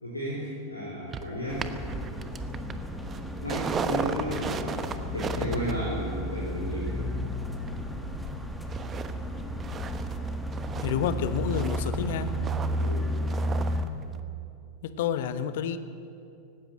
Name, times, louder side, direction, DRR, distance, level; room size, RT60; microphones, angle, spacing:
voice 1, 0.0-1.7 3.4-7.2 12.8-13.1, equal, 80° left, -6 dB, 4.4 m, -33 dB
sound 1, 1.1-8.3 8.7-9.1 9.4-13.9 14.2-14.3, right 6 dB, 20° right, 1.1 m, -36 dB
sound 2, 1.5-13.8, equal, ahead, 1.9 m, -33 dB
voice 2, 10.8-12.3 14.8-15.8, left 9 dB, 55° left, 12 dB, 1.1 m, -29 dB
18.5 x 16.5 x 8.6 m, 2.6 s
figure-of-eight pair, 90°, 0 cm